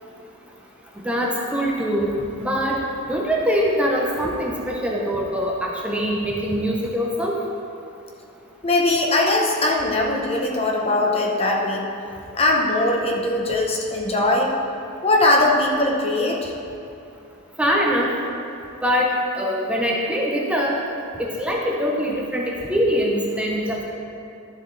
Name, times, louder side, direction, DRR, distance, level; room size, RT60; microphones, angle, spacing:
voice 1, 1.0-2.1 2.4-2.8 3.1-7.4 17.6-18.1 18.8-19.1 19.4-20.8 21.2-23.8, equal, 5° right, -2 dB, 0.8 m, -23 dB
voice 2, 8.6-11.8 12.4-14.6 15.0-16.5, left 2 dB, 30° left, 0 dB, 0.9 m, -20 dB
12.0 x 7.5 x 3.3 m, 2.7 s
head